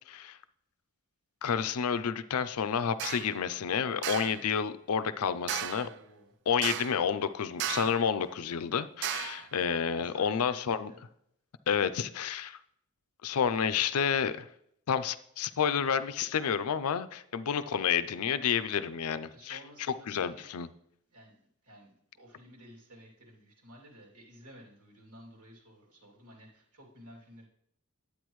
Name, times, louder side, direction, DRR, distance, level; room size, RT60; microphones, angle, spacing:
voice 1, 0.1-0.4 1.4-5.9 6.5-10.9 11.7-12.6 13.2-14.5 14.9-19.6 20.1-20.7, left 7 dB, 80° left, 0.5 m, -30 dB
sound 1, 3.0-3.3 4.0-4.4 5.5-5.9 6.6-7.1 7.6-8.1 9.0-9.5, right 11 dB, 50° right, 0.3 m, -35 dB
voice 2, 5.7-6.3 9.9-11.0 19.3-20.5 21.1-21.3 21.6-27.4, right 1 dB, 90° right, 2.7 m, -53 dB
10.0 x 8.6 x 3.1 m
head